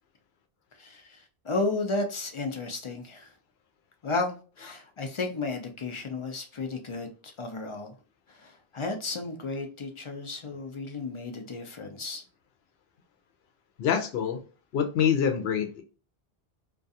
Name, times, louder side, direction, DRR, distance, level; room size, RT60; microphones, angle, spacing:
voice 1, 0.8-3.3 4.0-7.9 8.3-12.2, left 3 dB, 50° left, 0.4 m, -33 dB
voice 2, 13.8-14.4 14.7-15.8, left 8 dB, 85° left, 0.8 m, -25 dB
2.3 x 2.3 x 2.6 m
omnidirectional pair, 1.0 m